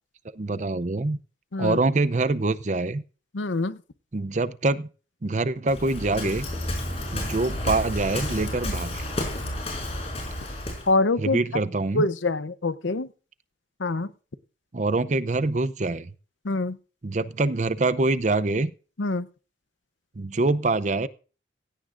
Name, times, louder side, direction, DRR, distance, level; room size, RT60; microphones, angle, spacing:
voice 1, 0.3-1.2 1.6-3.0 4.1-4.9 5.2-6.5 7.1-9.0 11.2-12.1 14.7-16.1 17.0-18.7 20.2-21.1, right 2 dB, 40° right, 15 dB, 0.6 m, -25 dB
voice 2, 3.3-3.8 10.9-11.4 11.9-13.1 13.8-14.1 16.4-16.8 19.0-19.3, left 2 dB, 85° left, 14 dB, 0.8 m, -25 dB
Waves surf, 5.7-10.9, left 1 dB, 35° left, 5.4 m, -31 dB
16.5 x 16.0 x 2.5 m, 0.37 s
head